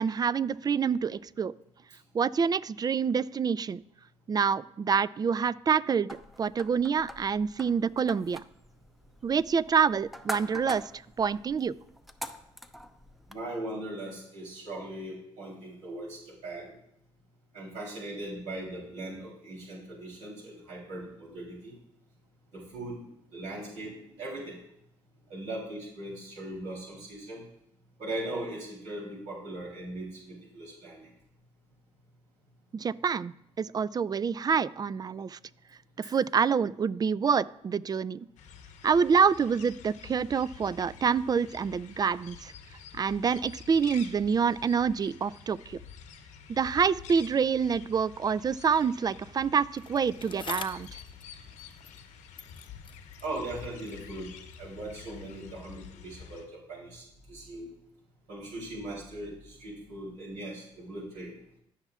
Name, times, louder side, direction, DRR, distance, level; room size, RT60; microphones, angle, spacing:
voice 1, 0.0-1.5 2.1-3.8 4.3-6.1 6.4-8.4 9.2-10.9 11.2-11.7 32.7-35.4 36.1-38.3 38.8-42.5 42.9-45.8 46.5-51.0, right 6 dB, 30° right, 19 dB, 0.3 m, -27 dB
sound 1, 6.1-13.4, equal, ahead, 0.7 m, -44 dB
voice 2, 13.3-16.7 17.5-21.7 22.5-23.0 23.3-24.6 25.3-27.4 28.0-31.1 36.0-36.1 53.2-54.3 54.6-57.7 58.3-61.3, right 1 dB, 75° right, -4 dB, 3.2 m, -39 dB
sound 2, 38.4-56.4, left 7 dB, 75° left, 1.0 m, -49 dB
Bicycle, 49.7-52.1 52.4-54.7 55.5-55.6, left 6 dB, 40° left, 0.7 m, -46 dB
14.0 x 5.7 x 2.4 m, 0.76 s
supercardioid pair, 60°, 12 cm